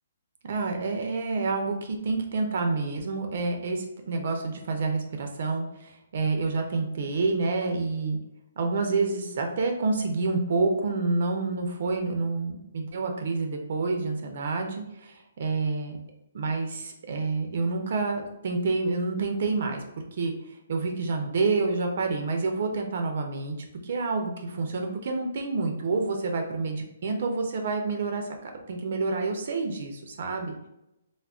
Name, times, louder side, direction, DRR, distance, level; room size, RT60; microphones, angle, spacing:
voice 1, 0.4-8.2 8.6-16.0 16.3-19.8 20.1-23.6 23.8-30.5, right 3 dB, 50° right, 4 dB, 0.4 m, -28 dB
3.5 x 2.0 x 2.3 m, 0.88 s
hypercardioid pair, 165°, 0 cm